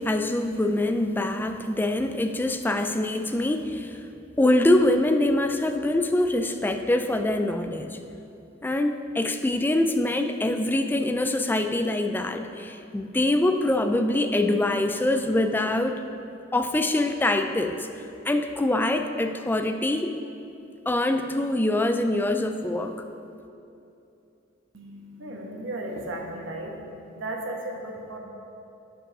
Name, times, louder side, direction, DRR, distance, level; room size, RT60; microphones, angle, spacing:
voice 1, 0.0-4.1 4.4-8.0 8.6-16.0 16.5-20.1 20.9-22.9, left 1 dB, 10° left, 7 dB, 0.3 m, -24 dB
voice 2, 24.7-28.2, right 1 dB, 65° right, 1 dB, 1.1 m, -35 dB
7.8 x 5.5 x 6.0 m, 2.8 s
head